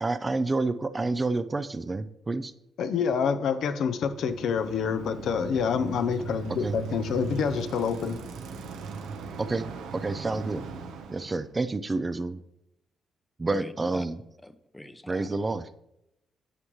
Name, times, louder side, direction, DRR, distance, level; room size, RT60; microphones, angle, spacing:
voice 1, 0.0-2.5 6.6-6.8 9.4-9.7 9.9-10.7 11.1-12.4 13.4-14.2 15.1-15.7, right 3 dB, 25° right, 11 dB, 0.5 m, -29 dB
voice 2, 2.8-8.2, left 6 dB, 70° left, 9 dB, 0.6 m, -27 dB
Bicycle, 3.9-11.5, right 5 dB, 85° right, 0.9 m, -39 dB
voice 3, 13.5-14.1 14.4-15.3, left 1 dB, 10° left, 11 dB, 0.7 m, -43 dB
9.7 x 7.5 x 3.1 m, 0.83 s
cardioid pair, 90°, 0 cm